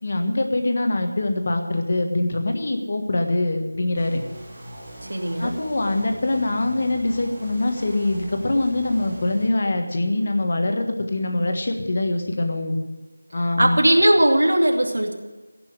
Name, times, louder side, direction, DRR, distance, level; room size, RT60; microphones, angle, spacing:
voice 1, 0.0-4.2 5.4-12.8 13.3-13.8, left 2 dB, 30° left, 4 dB, 1.4 m, -23 dB
sound 1, 3.9-9.5, right 1 dB, 15° right, 3.0 m, -40 dB
voice 2, 5.0-5.5 13.6-15.1, right 1 dB, 85° right, 3 dB, 2.5 m, -18 dB
17.0 x 6.1 x 9.4 m, 1.2 s
figure-of-eight pair, 180°, 0 cm